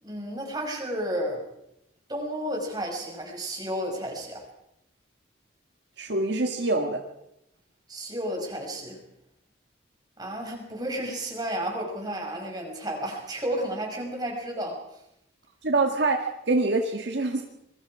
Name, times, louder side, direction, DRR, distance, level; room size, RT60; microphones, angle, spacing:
voice 1, 0.0-1.5 2.1-4.4 7.9-9.0 10.2-14.8, right 1 dB, 20° right, 1 dB, 5.7 m, -32 dB
voice 2, 6.0-7.0 15.6-17.4, right 2 dB, 65° right, 4 dB, 1.7 m, -25 dB
27.0 x 22.0 x 4.9 m, 0.83 s
head